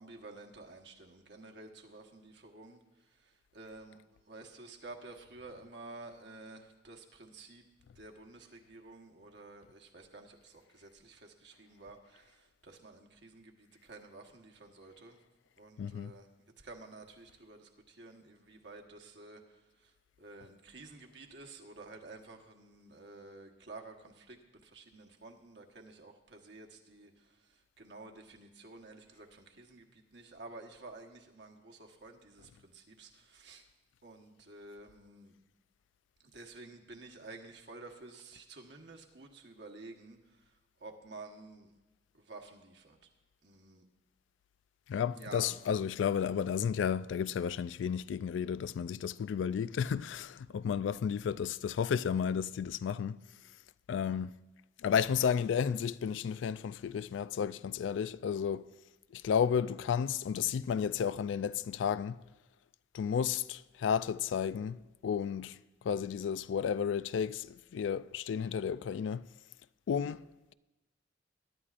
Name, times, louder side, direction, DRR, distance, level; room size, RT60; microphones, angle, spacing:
voice 1, 0.0-2.8 3.2-4.0 4.3-7.6 8.0-15.2 15.6-16.3 16.6-19.4 19.8-19.9 20.2-33.6 34.0-35.3 36.2-40.2 40.8-41.7 42.1-43.0 43.4-43.8 45.1-45.6, right 2 dB, 65° right, 1.2 m, -51 dB
voice 2, 15.8-16.1 44.9-53.2 53.9-54.3 54.8-58.7 59.1-62.2 62.9-64.8 65.0-65.6 65.9-67.5 67.7-69.3 69.9-70.2, left 7 dB, 85° left, 0.3 m, -32 dB
22.0 x 11.0 x 2.5 m
head